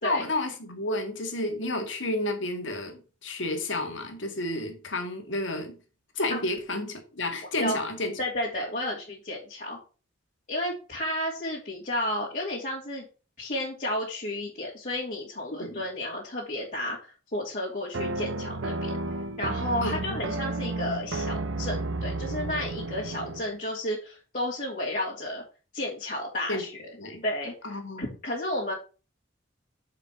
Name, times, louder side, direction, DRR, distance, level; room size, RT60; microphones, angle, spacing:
voice 1, 0.0-5.8 6.2-8.1 15.6-15.8 19.8-20.2 26.5-26.6 27.0-27.2 27.6-28.1, left 1 dB, 70° left, 2.0 m, -31 dB
voice 2, 8.2-9.8 10.5-13.1 13.4-17.0 17.3-19.0 19.4-25.4 25.7-26.9 27.2-28.7, left 1 dB, 45° left, 2.8 m, -32 dB
sound 1, 17.9-23.5, right 2 dB, 80° right, 0.7 m, -32 dB
7.3 x 5.2 x 6.0 m
head